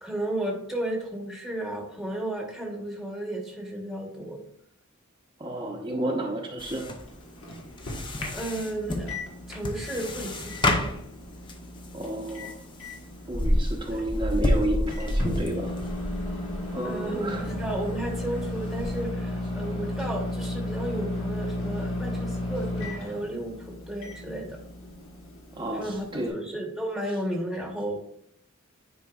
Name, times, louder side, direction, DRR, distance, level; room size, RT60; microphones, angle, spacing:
voice 1, 0.0-4.4 8.2-9.1 9.5-11.0 13.9-14.0 16.8-24.6 25.7-28.0, right 1 dB, ahead, -1 dB, 1.1 m, -33 dB
voice 2, 5.4-6.9 11.9-12.6 13.2-15.8 16.7-17.5 25.5-26.4, right 1 dB, 25° right, -2 dB, 0.8 m, -31 dB
sound 1, 6.6-19.1, left 1 dB, 25° left, 0.6 m, -31 dB
Microwave oven, 7.0-26.3, left 1 dB, 75° left, 1.5 m, -35 dB
9.6 x 4.5 x 2.4 m, 0.67 s
head